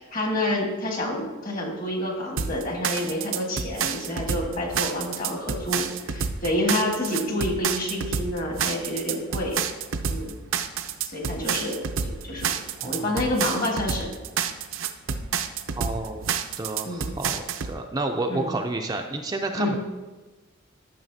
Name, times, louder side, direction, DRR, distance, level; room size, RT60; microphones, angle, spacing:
voice 1, 0.0-9.7 10.1-10.3 11.0-12.5 12.8-14.1 16.8-17.1 18.3-18.5 19.6-19.8, left 1 dB, 45° left, 1 dB, 1.5 m, -28 dB
sound 1, 2.4-17.7, right 6 dB, 70° right, 0.5 m, -29 dB
voice 2, 12.8-13.3 15.8-16.3 16.6-19.8, right 2 dB, 20° right, 3 dB, 0.4 m, -30 dB
12.0 x 6.4 x 2.7 m, 1.2 s
head